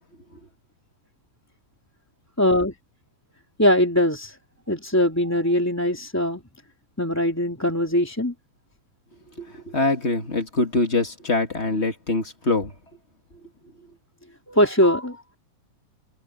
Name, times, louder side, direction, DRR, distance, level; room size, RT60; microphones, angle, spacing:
voice 1, 2.4-2.7 3.6-4.4 4.7-6.4 7.0-8.3 14.5-15.4, left 1 dB, 5° left, 2.7 m, -21 dB
voice 2, 9.4-12.7, left 2 dB, 25° left, 1.6 m, -24 dB
omnidirectional pair, 3.7 m